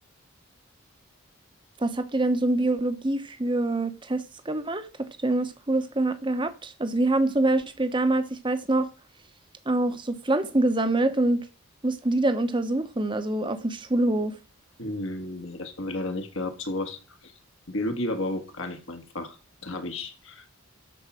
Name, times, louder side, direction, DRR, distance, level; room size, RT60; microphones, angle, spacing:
voice 1, 1.8-4.9 5.2-8.9 9.7-11.4 11.8-14.4, right 2 dB, 20° right, 0.9 m, -25 dB
voice 2, 14.8-17.3 17.7-20.6, left 1 dB, 60° left, 1.6 m, -33 dB
13.0 x 4.7 x 6.2 m
head